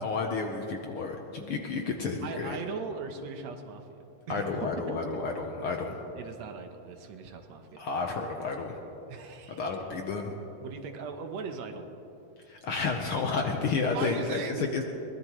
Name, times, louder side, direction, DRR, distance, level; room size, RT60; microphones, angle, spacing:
voice 1, 0.0-2.6 4.3-6.0 7.8-8.8 9.6-10.3 12.5-14.4 14.7-14.8, left 4 dB, 65° left, 2 dB, 1.5 m, -31 dB
voice 2, 2.2-5.0 6.2-7.8 9.1-9.6 10.6-11.8 13.9-14.7, right 5 dB, 70° right, 6 dB, 2.1 m, -39 dB
23.5 x 19.5 x 3.1 m, 3.0 s
omnidirectional pair, 3.3 m